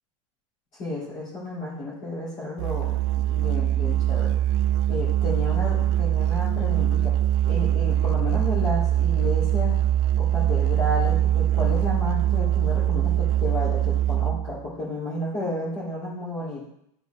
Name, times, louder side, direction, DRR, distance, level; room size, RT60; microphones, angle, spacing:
voice 1, 0.8-2.9 3.3-4.3 4.9-7.1 7.4-9.8 10.2-16.6, left 1 dB, 40° left, -10 dB, 2.9 m, -32 dB
Musical instrument, 2.6-14.6, right 12 dB, 50° right, 0.4 m, -23 dB
10.0 x 4.2 x 3.4 m, 0.76 s
supercardioid pair, 160°, 18 cm